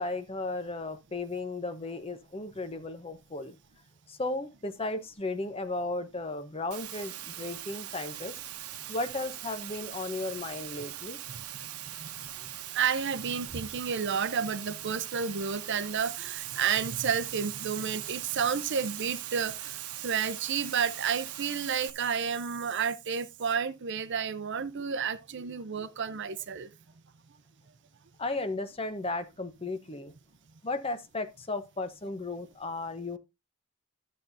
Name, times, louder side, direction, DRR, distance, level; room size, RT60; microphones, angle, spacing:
voice 1, 0.0-3.5 4.1-8.3 8.9-11.2 28.2-30.1 30.6-33.2, left 2 dB, 25° left, 0.8 m, -35 dB
Water, 6.7-21.9, right 12 dB, 85° right, 0.9 m, -41 dB
voice 2, 12.7-26.7, right 7 dB, 55° right, 0.6 m, -31 dB
12.0 x 7.4 x 2.6 m
head